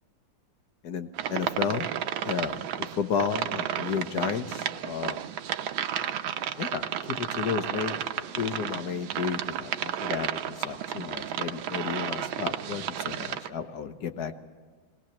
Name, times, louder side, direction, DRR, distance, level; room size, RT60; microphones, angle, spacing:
voice 1, 0.8-1.9 2.2-5.3 6.6-14.3, left 7 dB, 60° left, 9 dB, 1.5 m, -32 dB
sound 1, 1.1-13.5, right 10 dB, 80° right, 1.6 m, -32 dB
20.5 x 18.5 x 7.2 m, 1.5 s
omnidirectional pair, 2.2 m